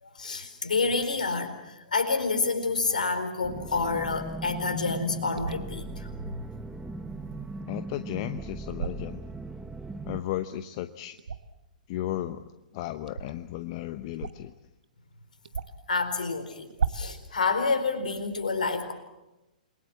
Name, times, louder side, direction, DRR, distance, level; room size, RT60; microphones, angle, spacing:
voice 1, 0.0-6.4 15.9-18.9, left 4 dB, 70° left, 7 dB, 4.4 m, -28 dB
sound 1, 3.4-10.2, right 2 dB, 5° right, 1.0 m, -38 dB
sound 2, 5.4-5.7 8.7-9.0 11.2-11.6 13.1-13.3 14.1-14.5 14.8-14.9 15.4-15.9 16.7-17.2, right 5 dB, 70° right, 1.3 m, -33 dB
voice 2, 7.7-9.3 10.1-11.2 11.9-12.4 12.7-14.5, left 13 dB, 40° left, 10 dB, 0.9 m, -34 dB
28.5 x 22.5 x 7.4 m, 0.98 s
figure-of-eight pair, 115°, 4 cm